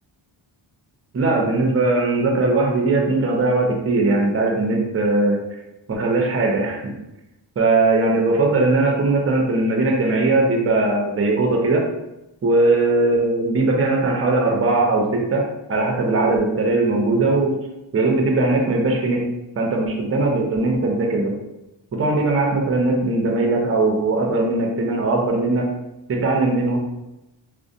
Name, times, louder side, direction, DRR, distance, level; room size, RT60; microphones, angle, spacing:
voice 1, 1.1-5.4 5.9-6.9 7.6-11.8 12.4-15.4 15.7-17.6 17.9-19.3 19.6-21.4 21.9-25.7 26.1-26.8, right 2 dB, 30° right, 1 dB, 0.6 m, -19 dB
2.5 x 2.1 x 2.5 m, 0.95 s
cardioid pair, 55°, 49 cm